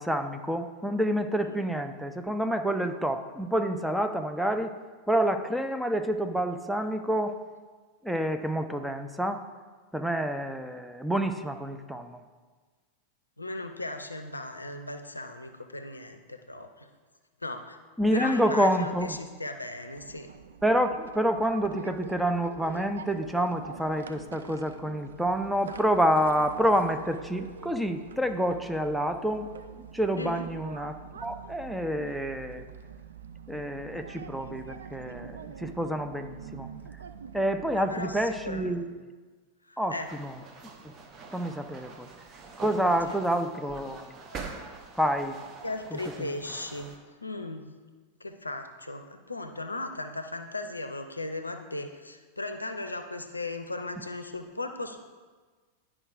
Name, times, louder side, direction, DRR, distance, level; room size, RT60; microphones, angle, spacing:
voice 1, 0.0-4.7 5.1-7.4 8.0-9.4 9.9-12.2 18.0-19.2 20.6-29.5 29.9-32.6 33.5-36.7 37.3-38.8 39.8-39.9 40.2-40.3 40.8-40.9 41.3-42.1 42.6-44.1 45.0-45.4, equal, ahead, 6 dB, 0.4 m, -28 dB
voice 2, 13.4-16.9 17.4-17.8 18.1-20.3 30.2-30.5 37.7-38.9 39.7-40.1 43.1-43.2 45.6-47.7 48.2-55.0, left 2 dB, 80° left, 7 dB, 0.5 m, -37 dB
sound 1, 20.0-38.7, right 6 dB, 70° right, 0.3 m, -45 dB
sound 2, 40.0-47.0, right 4 dB, 30° right, 0.8 m, -45 dB
10.5 x 4.9 x 2.5 m, 1.4 s
figure-of-eight pair, 90°, 0 cm